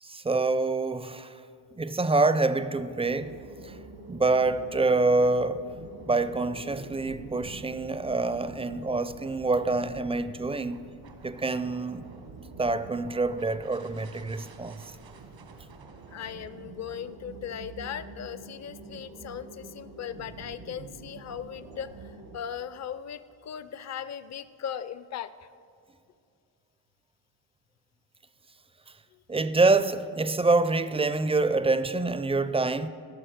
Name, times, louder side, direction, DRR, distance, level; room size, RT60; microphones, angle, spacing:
voice 1, 0.0-1.4 1.7-5.6 6.1-10.8 11.2-12.1 12.6-14.8 29.3-32.9, right 3 dB, 15° right, 0.4 m, -26 dB
sound 1, 3.0-22.4, right 3 dB, 80° right, 1.3 m, -46 dB
voice 2, 16.1-25.5 29.1-29.2, left 8 dB, 40° left, 0.5 m, -38 dB
14.5 x 5.9 x 6.5 m
cardioid pair, 70°, 44 cm